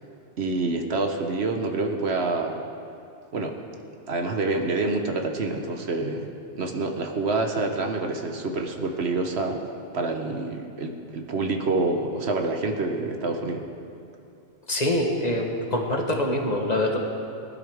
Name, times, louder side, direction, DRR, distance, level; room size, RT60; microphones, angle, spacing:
voice 1, 0.4-2.6 3.3-3.6 4.1-6.3 6.5-9.6 9.9-13.7, right 3 dB, 65° right, 3 dB, 1.2 m, -27 dB
voice 2, 14.7-17.0, left 1 dB, 35° left, 1 dB, 1.3 m, -25 dB
19.0 x 12.5 x 3.5 m, 2.5 s
omnidirectional pair, 1.2 m